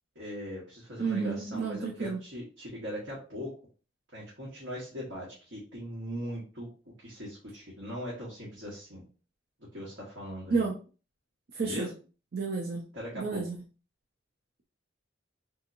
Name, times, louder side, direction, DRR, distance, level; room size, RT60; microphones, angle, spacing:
voice 1, 0.1-3.5 4.1-6.7 7.0-9.0 9.7-10.7 11.6-11.9 12.9-13.4, equal, 70° right, -6 dB, 1.3 m, -40 dB
voice 2, 1.0-2.2 10.5-10.8 11.5-11.9 12.3-12.9 13.1-13.6, right 4 dB, 50° right, 0 dB, 0.5 m, -31 dB
3.6 x 2.8 x 2.5 m, 0.36 s
head